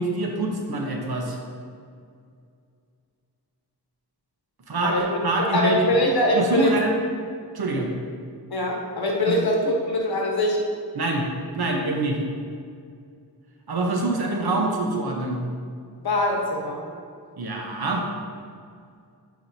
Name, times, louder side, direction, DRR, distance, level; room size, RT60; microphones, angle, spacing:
voice 1, 0.0-1.4 4.7-5.0 5.2-5.9 6.3-6.9 7.5-7.9 9.3-9.4 10.9-11.3 11.5-12.2 13.7-15.4 17.4-18.0, right 2 dB, 65° right, 0 dB, 1.1 m, -25 dB
voice 2, 5.4-6.7 8.5-10.6 16.0-16.8, left 1 dB, 60° left, -1 dB, 1.4 m, -23 dB
9.1 x 5.0 x 2.8 m, 2.2 s
wide cardioid pair, 70°, 41 cm